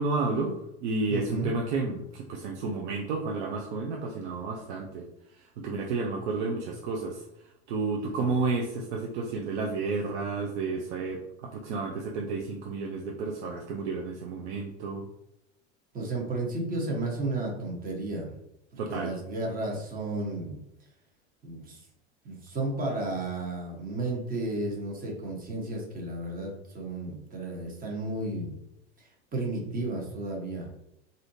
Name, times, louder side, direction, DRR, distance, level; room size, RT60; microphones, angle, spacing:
voice 1, 0.0-5.1 5.6-7.2 7.7-15.1 18.8-19.1, right 3 dB, 75° right, 0 dB, 0.7 m, -31 dB
voice 2, 1.1-1.5 8.0-8.3 15.9-18.4 18.9-20.6 21.4-21.9 22.2-28.5 29.0-30.7, right 2 dB, 25° right, -1 dB, 1.2 m, -33 dB
3.4 x 2.7 x 2.7 m, 0.81 s
hypercardioid pair, 100°, 34 cm